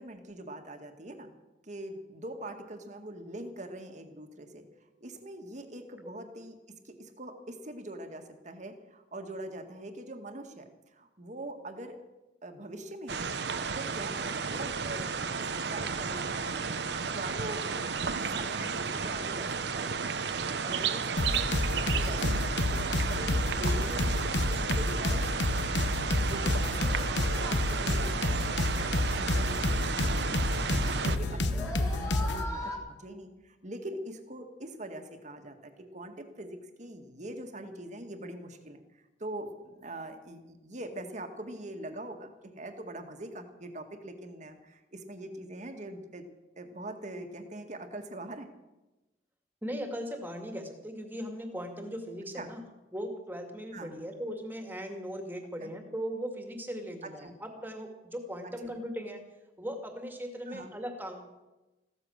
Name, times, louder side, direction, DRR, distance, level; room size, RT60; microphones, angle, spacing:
voice 1, 0.0-1.3 1.6-4.6 5.0-12.0 12.4-13.3 13.7-19.9 20.4-25.3 26.0-30.7 31.0-46.2 46.6-48.5 52.4-52.5 53.7-54.0 55.6-55.7 57.0-57.3 58.4-58.8 60.5-60.7, right 1 dB, 40° right, 6 dB, 1.8 m, -43 dB
sound 1, 13.1-31.2, right 5 dB, 65° right, 0.9 m, -33 dB
sound 2, 21.2-32.5, left 2 dB, 70° left, 1.1 m, -29 dB
sound 3, 26.6-32.8, left 1 dB, 15° left, 2.9 m, -42 dB
voice 2, 49.6-52.6 52.9-59.2 59.6-61.2, equal, 10° right, 4 dB, 2.2 m, -38 dB
15.5 x 13.5 x 6.6 m, 1.1 s
head